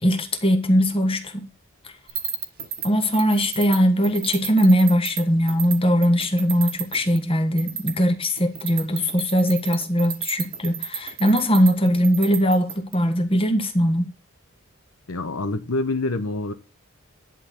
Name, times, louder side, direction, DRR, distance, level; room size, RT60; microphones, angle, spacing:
voice 1, 0.0-1.5 2.8-14.1, equal, 25° left, 1.4 m, -20 dB
sound 1, 2.1-5.2 5.5-5.8 6.0-7.2 7.6-7.9 8.4-13.0, right 8 dB, 45° right, 1.4 m, -31 dB
voice 2, 15.1-16.5, left 2 dB, 90° left, 1.0 m, -26 dB
11.0 x 4.0 x 7.0 m
head